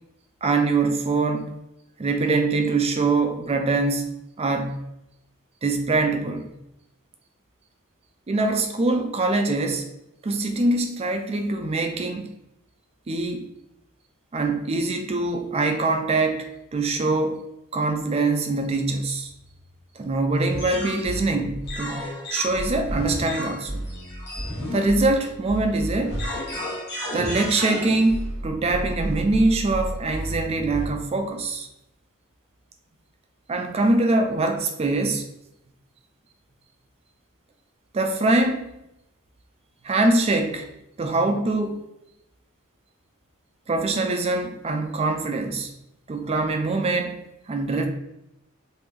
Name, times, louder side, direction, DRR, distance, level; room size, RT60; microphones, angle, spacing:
voice 1, 0.4-1.5 2.0-4.8 5.6-6.5 8.3-9.8 10.2-12.3 13.1-13.5 14.3-17.4 17.7-19.3 20.0-22.0 22.3-23.8 24.7-26.2 27.1-31.7 33.5-35.3 37.9-38.6 39.8-40.7 41.0-41.9 43.7-45.7 46.1-47.9, right 2 dB, 30° right, 5 dB, 0.4 m, -23 dB
sound 1, 20.5-31.0, equal, 50° left, 1.2 m, -32 dB
3.4 x 2.6 x 3.2 m, 0.84 s
head